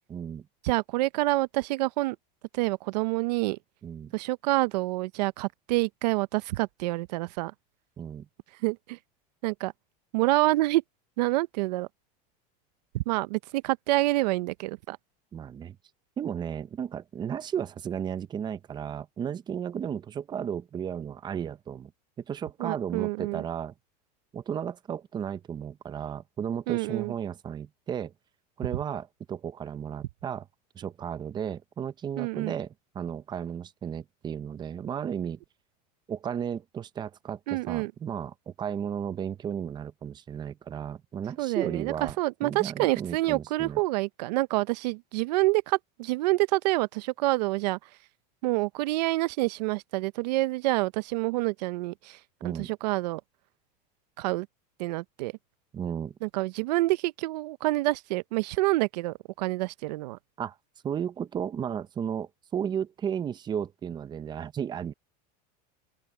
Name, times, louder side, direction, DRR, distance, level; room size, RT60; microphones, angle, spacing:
voice 1, 0.1-0.5 3.8-4.1 8.0-8.3 15.3-15.8 16.2-21.9 22.2-23.7 24.3-28.1 28.6-30.5 30.7-35.4 36.1-42.2 42.4-43.8 52.4-52.7 55.7-56.1 60.4-60.6 60.8-64.9, right 8 dB, 20° right, 0.7 m, -34 dB
voice 2, 0.6-2.2 2.5-3.6 4.1-7.5 8.6-9.0 9.4-9.7 10.1-10.8 11.2-11.9 12.9-15.0 22.6-23.4 26.7-27.1 32.2-32.6 37.5-37.9 41.4-47.8 48.4-52.2 52.4-53.2 54.2-54.5 54.8-55.3 56.2-60.2, right 20 dB, 75° right, 0.7 m, -27 dB
open air
supercardioid pair, 140°, 21 cm